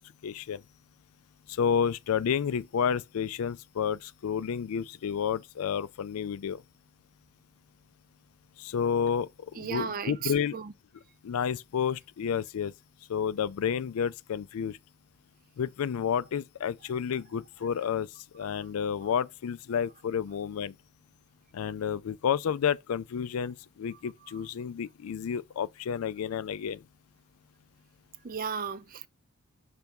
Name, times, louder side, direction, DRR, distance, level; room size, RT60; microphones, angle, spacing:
voice 1, 0.2-0.6 1.5-6.6 8.6-10.6 11.2-12.7 13.1-14.8 15.6-20.8 21.5-26.9, left 7 dB, 70° left, 0.4 m, -30 dB
voice 2, 9.6-10.7 28.2-29.1, right 6 dB, 40° right, 0.5 m, -35 dB
5.8 x 3.4 x 5.3 m
head